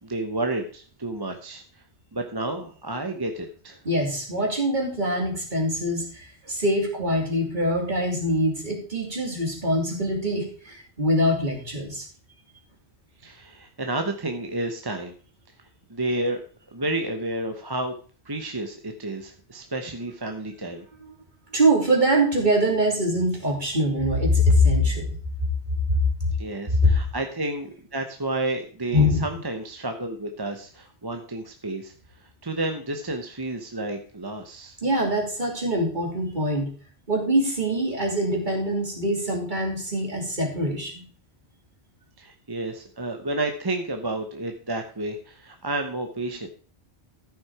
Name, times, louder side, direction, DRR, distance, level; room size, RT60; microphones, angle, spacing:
voice 1, 0.0-1.8 2.1-3.8 13.2-15.1 15.9-16.4 16.7-17.9 18.2-20.8 26.4-31.9 32.2-34.8 42.2-46.5, right 2 dB, 25° right, 5 dB, 1.0 m, -31 dB
voice 2, 3.8-12.1 21.5-25.2 25.9-26.0 26.8-26.9 28.9-29.2 34.8-36.7 37.1-41.0, equal, 45° right, 0 dB, 3.1 m, -23 dB
14.0 x 6.1 x 4.8 m, 0.41 s
omnidirectional pair, 1.1 m